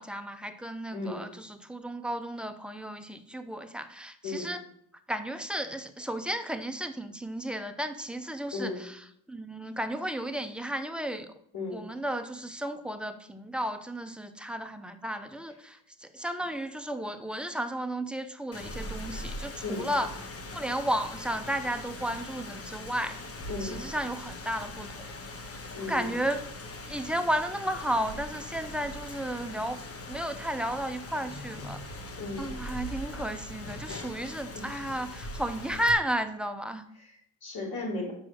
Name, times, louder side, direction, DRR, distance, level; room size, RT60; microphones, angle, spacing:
voice 1, 0.0-4.6 5.1-9.0 9.3-11.3 11.7-20.1 20.5-23.2 23.6-25.1 25.9-26.4 26.9-29.8 30.1-31.8 32.4-36.8, right 1 dB, ahead, 7 dB, 0.7 m, -33 dB
voice 2, 0.9-1.2 4.2-4.5 8.5-8.8 11.5-11.8 19.6-19.9 23.5-23.8 25.7-26.2 32.2-32.5 32.8-33.0 34.5-34.8 37.0-38.1, left 3 dB, 50° left, -2 dB, 3.1 m, -36 dB
Rain, 18.5-35.9, left 1 dB, 30° left, 1.1 m, -41 dB
6.1 x 4.9 x 6.2 m, 0.70 s
supercardioid pair, 70°, 47 cm